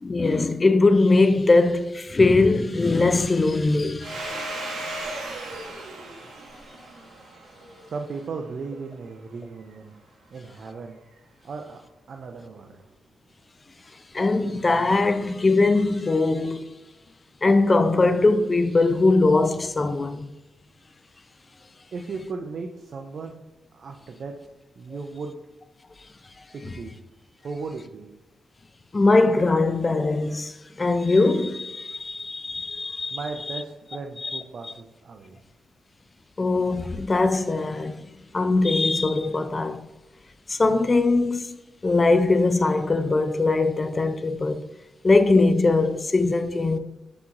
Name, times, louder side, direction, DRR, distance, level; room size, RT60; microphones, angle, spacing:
voice 1, 0.0-5.1 14.1-16.6 17.4-20.3 28.9-33.2 33.5-33.6 34.2-34.7 36.4-38.0 38.3-39.8 40.5-41.5 41.8-44.6 45.0-46.8, left 3 dB, 35° left, 0.4 m, -21 dB
Domestic sounds home sounds, 4.0-8.4, right 2 dB, 85° right, 0.8 m, -36 dB
voice 2, 7.9-9.9 10.3-11.0 11.4-11.8 12.1-12.9 21.9-23.4 23.7-24.3 24.7-25.4 26.5-27.0 27.4-28.1 33.1-35.4, right 4 dB, 65° right, 0.4 m, -36 dB
5.7 x 2.9 x 2.5 m
supercardioid pair, 50°, 0 cm